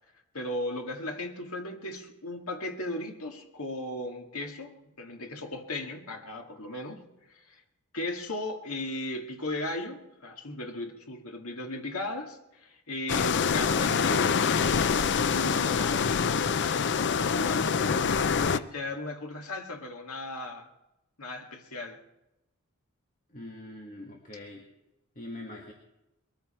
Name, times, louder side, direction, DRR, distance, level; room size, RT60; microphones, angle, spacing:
voice 1, 0.3-7.6 7.9-14.4 15.1-16.2 17.1-20.7 21.2-22.0, left 1 dB, 70° left, 3 dB, 2.2 m, -36 dB
sound 1, 13.1-18.6, left 6 dB, 50° left, 0.5 m, -25 dB
voice 2, 23.3-24.6 25.2-25.7, left 1 dB, 35° left, 0 dB, 1.9 m, -43 dB
22.0 x 14.0 x 4.4 m, 0.92 s
head